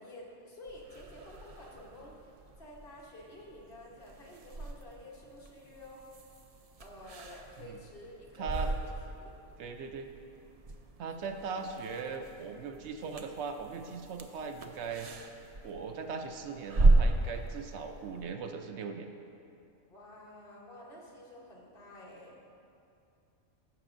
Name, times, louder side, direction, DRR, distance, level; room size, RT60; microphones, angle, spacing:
voice 1, 0.0-2.3 2.6-6.0 6.8-9.4 11.5-12.0 19.8-22.4, left 1 dB, 50° left, -3 dB, 1.3 m, -50 dB
sound 1, 0.7-18.2, right 2 dB, 55° right, 0.4 m, -35 dB
voice 2, 8.4-8.7 9.6-10.1 11.0-15.1 15.6-19.1, right 5 dB, 75° right, 6 dB, 0.8 m, -39 dB
14.5 x 6.2 x 2.5 m, 2.7 s
omnidirectional pair, 1.2 m